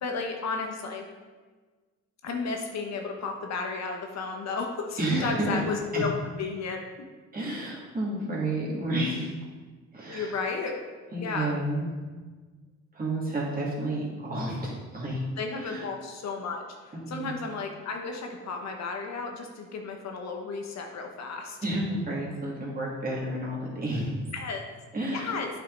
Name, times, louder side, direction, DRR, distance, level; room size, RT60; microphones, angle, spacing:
voice 1, 0.0-1.1 2.2-6.1 6.4-6.8 10.1-10.8 11.2-11.6 15.4-21.6 24.3-24.6 25.1-25.5, left 4 dB, 60° left, 3 dB, 1.1 m, -33 dB
voice 2, 5.0-5.6 5.9-6.0 7.3-9.3 9.9-10.4 11.1-11.9 12.9-15.2 15.6-15.9 16.9-17.3 21.6-24.2 24.9-25.4, right 1 dB, 30° right, -5 dB, 2.5 m, -31 dB
8.7 x 5.8 x 4.0 m, 1.4 s
cardioid pair, 90°, 30 cm